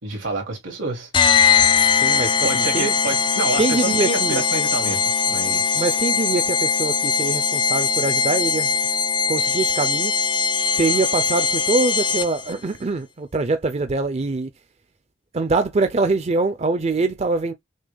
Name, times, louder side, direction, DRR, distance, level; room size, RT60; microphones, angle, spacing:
voice 1, 0.0-1.1 2.4-5.8, right 3 dB, 80° right, 2.5 m, -28 dB
sound 1, 1.1-12.5, left 6 dB, 25° left, 0.3 m, -20 dB
voice 2, 1.8-2.9 3.6-4.4 5.7-8.8 9.3-10.1 10.8-14.5 15.3-17.5, right 3 dB, 35° right, 0.5 m, -23 dB
6.3 x 2.2 x 3.4 m
head